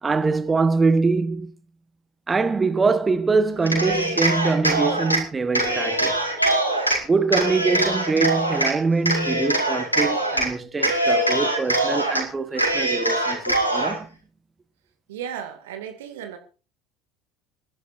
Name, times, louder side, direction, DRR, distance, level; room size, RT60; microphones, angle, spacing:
voice 1, 0.0-1.5 2.3-6.1 7.0-14.1, right 4 dB, 20° right, 1.3 m, -23 dB
Cheering, 3.6-5.2 5.5-7.0 7.3-8.7 9.1-10.5 10.8-12.2 12.6-14.0, right 1 dB, 85° left, 3.2 m, -23 dB
voice 2, 15.1-16.4, right 9 dB, 65° right, 2.4 m, -34 dB
26.5 x 11.0 x 2.7 m
figure-of-eight pair, 65°, 0 cm